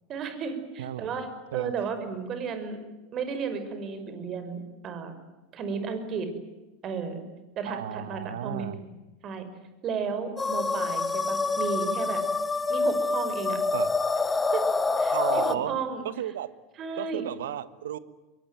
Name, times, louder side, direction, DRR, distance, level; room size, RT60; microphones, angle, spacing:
voice 1, 0.1-2.8 3.1-5.1 5.5-6.3 6.8-7.2 7.6-8.9 9.2-9.4 9.8-12.2 12.7-13.6 14.5-16.0 16.8-17.3, right 5 dB, 40° right, 9 dB, 5.7 m, -33 dB
voice 2, 0.8-1.2 1.5-1.7 7.7-8.8 13.7-13.9 15.1-15.8 16.0-16.5 17.0-18.0, right 11 dB, 70° right, 15 dB, 1.4 m, -33 dB
sound 1, 10.4-15.6, left 3 dB, 15° left, 1.7 m, -26 dB
24.5 x 23.0 x 9.3 m, 1.1 s
figure-of-eight pair, 85°, 0 cm